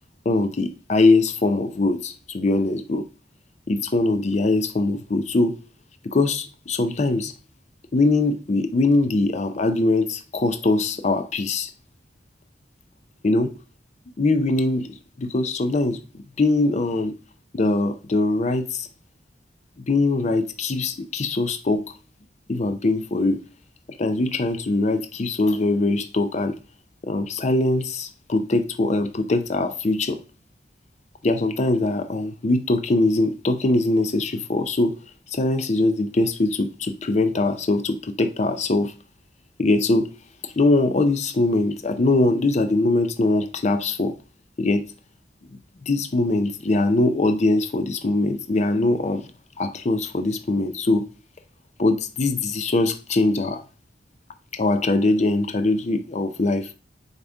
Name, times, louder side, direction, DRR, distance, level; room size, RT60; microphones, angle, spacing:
voice 1, 0.3-3.0 3.7-5.6 6.0-7.3 7.9-11.7 13.2-13.6 14.2-16.0 16.4-17.1 17.5-18.9 19.9-22.0 22.5-23.4 24.0-26.6 27.0-30.2 31.2-35.0 35.3-39.0 39.6-40.1 40.4-44.1 44.6-44.9 45.9-49.3 49.6-51.1 51.8-53.6 54.5-56.7, left 2 dB, 40° left, 0.5 m, -22 dB
6.9 x 4.1 x 3.5 m
head